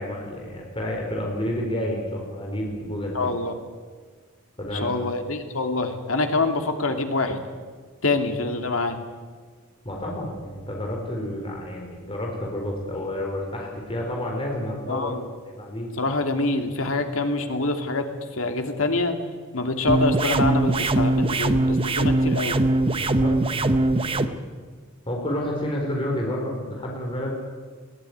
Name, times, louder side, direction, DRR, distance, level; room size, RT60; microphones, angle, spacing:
voice 1, 0.0-3.1 4.6-4.9 9.8-15.1 15.4-15.9 23.0-23.8 24.0-24.5 25.1-27.3, left 1 dB, 25° left, -1 dB, 4.3 m, -30 dB
voice 2, 3.1-3.6 4.7-7.4 8.0-9.0 14.9-15.3 16.0-18.1 18.3-19.2 19.5-22.6, left 2 dB, 85° left, 5 dB, 2.5 m, -25 dB
sound 1, 19.9-24.3, right 2 dB, 25° right, 0.8 m, -21 dB
21.0 x 17.5 x 9.5 m, 1.5 s
head